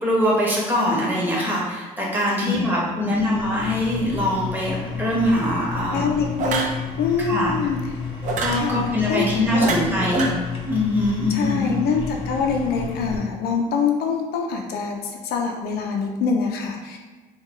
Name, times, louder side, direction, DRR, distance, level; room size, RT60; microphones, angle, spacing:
voice 1, 0.0-6.1 7.2-7.5 8.4-10.3 10.7-11.7, left 1 dB, 10° right, -5 dB, 1.1 m, -22 dB
voice 2, 2.4-3.4 5.9-6.6 7.0-7.8 8.5-10.2 11.3-17.0, left 5 dB, 70° left, 1 dB, 0.5 m, -25 dB
sound 1, 3.3-13.2, left 6 dB, 30° left, 0.8 m, -32 dB
sound 2, 5.3-5.6 6.4-6.8 8.2-8.6 9.6-10.3, right 3 dB, 50° right, 0.6 m, -26 dB
3.1 x 2.3 x 3.7 m, 1.3 s
cardioid pair, 110°, 17 cm